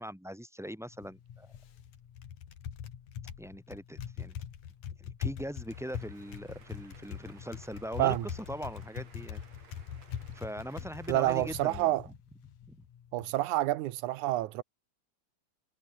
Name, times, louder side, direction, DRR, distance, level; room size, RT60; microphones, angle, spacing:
voice 1, 0.0-1.5 3.4-4.4 5.0-9.4 10.3-12.1 12.7-12.8, equal, ahead, 6.7 m, -41 dB
Typing, 0.9-13.3, left 9 dB, 85° left, 3.6 m, -43 dB
sound 1, 5.7-11.9, right 5 dB, 60° right, 5.3 m, -59 dB
voice 2, 11.1-12.0 13.1-14.6, right 15 dB, 85° right, 2.3 m, -28 dB
omnidirectional pair, 3.4 m